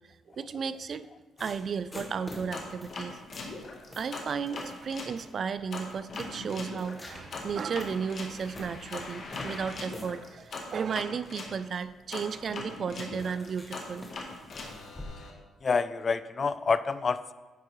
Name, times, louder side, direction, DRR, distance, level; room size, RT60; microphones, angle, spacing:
voice 1, 0.3-1.1 1.4-3.2 4.0-14.1, right 6 dB, 50° right, 13 dB, 0.3 m, -34 dB
sound 1, 1.4-15.1, left 1 dB, 20° left, 1.2 m, -49 dB
sound 2, 2.5-5.2 5.7-11.6 12.1-15.3, left 3 dB, 55° left, 1.1 m, -41 dB
voice 2, 15.6-17.3, left 5 dB, 40° left, 14 dB, 0.3 m, -27 dB
9.2 x 4.7 x 3.1 m, 1.2 s
cardioid pair, 90°, 0 cm